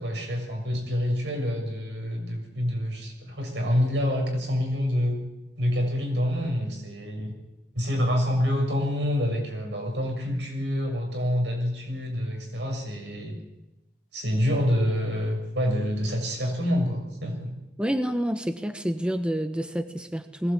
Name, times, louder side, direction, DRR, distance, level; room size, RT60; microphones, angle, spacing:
voice 1, 0.0-5.2 5.6-7.3 7.7-13.4 14.1-17.5, equal, 85° right, 2 dB, 6.8 m, -27 dB
voice 2, 17.8-20.5, equal, 5° right, 8 dB, 1.1 m, -28 dB
21.0 x 17.5 x 8.6 m, 0.99 s
head